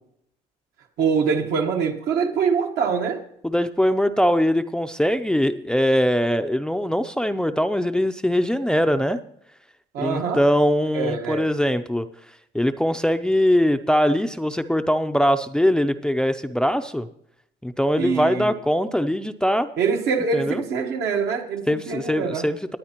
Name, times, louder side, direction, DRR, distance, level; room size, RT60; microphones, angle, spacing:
voice 1, 1.0-3.2 9.9-10.4 10.9-11.5 18.0-18.5 19.8-22.5, right 5 dB, 75° right, 3 dB, 1.3 m, -24 dB
voice 2, 3.4-9.2 10.0-12.1 12.5-17.1 17.6-19.7 20.3-20.6 21.7-22.8, equal, 5° left, 10 dB, 0.4 m, -21 dB
19.0 x 9.1 x 2.9 m, 0.73 s
cardioid pair, 110°, 17 cm